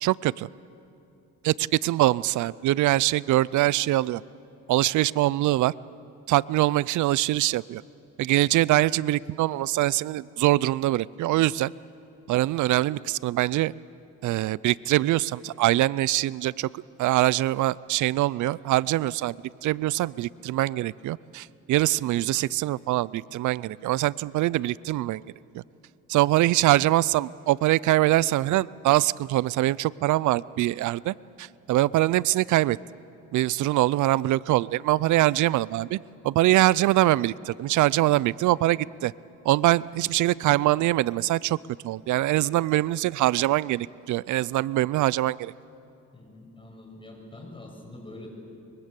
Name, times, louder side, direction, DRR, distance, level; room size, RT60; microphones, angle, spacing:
voice 1, 0.0-0.5 1.4-4.2 4.7-5.7 6.3-7.8 8.2-11.7 12.3-13.7 14.2-25.2 25.5-25.6 26.1-32.8 33.3-36.0 36.2-39.1 39.4-41.6 41.8-45.5, right 16 dB, 75° right, 22 dB, 0.5 m, -23 dB
voice 2, 46.1-48.3, left 2 dB, 15° left, 2 dB, 6.8 m, -44 dB
23.5 x 23.5 x 8.3 m, 2.7 s
cardioid pair, 90°, 30 cm